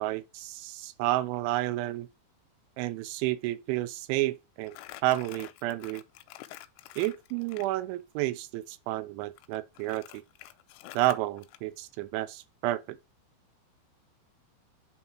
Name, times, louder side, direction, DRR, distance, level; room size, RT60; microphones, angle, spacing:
voice 1, 0.0-2.1 2.8-4.8 5.0-6.0 7.0-10.2 10.9-13.0, right 16 dB, 85° right, 3.0 m, -31 dB
Crumpling crinkling, 4.7-7.7 9.4-11.6, left 15 dB, 85° left, 2.8 m, -47 dB
8.3 x 3.6 x 4.3 m
omnidirectional pair, 5.3 m